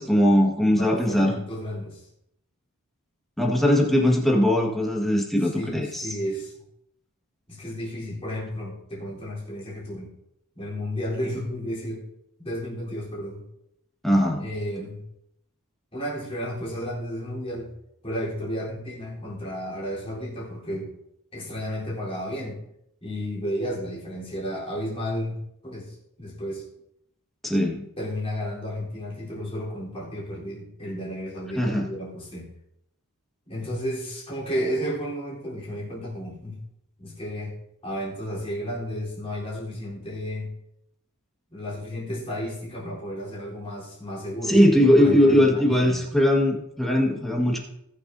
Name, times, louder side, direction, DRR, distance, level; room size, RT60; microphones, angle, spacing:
voice 1, 0.0-1.4 3.4-6.1 14.0-14.5 27.4-27.8 31.6-31.9 44.4-47.6, equal, ahead, -1 dB, 1.6 m, -20 dB
voice 2, 0.7-2.1 5.5-6.5 7.5-10.1 10.6-12.0 12.4-13.4 14.4-15.0 15.9-17.7 18.0-20.9 21.3-22.6 23.0-26.6 28.0-32.5 33.5-36.6 37.0-37.6 37.8-40.5 41.5-44.6 45.0-46.1, equal, 25° left, -6 dB, 3.8 m, -32 dB
19.5 x 6.8 x 2.7 m, 0.79 s
head